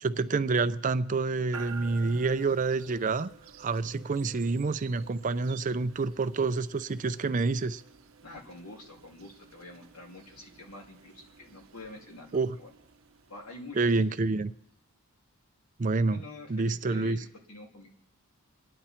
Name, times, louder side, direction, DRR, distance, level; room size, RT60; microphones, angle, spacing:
voice 1, 0.0-3.3 3.6-7.8 12.3-12.6 13.8-14.5 15.8-16.2 16.5-17.2, right 3 dB, 35° right, 11 dB, 0.4 m, -28 dB
sound 1, 1.5-14.5, right 5 dB, 65° right, 0.9 m, -51 dB
voice 2, 8.2-12.7 13.3-13.9 16.1-17.9, left 2 dB, 85° left, 0 dB, 2.9 m, -47 dB
27.5 x 10.0 x 4.4 m, 0.87 s
head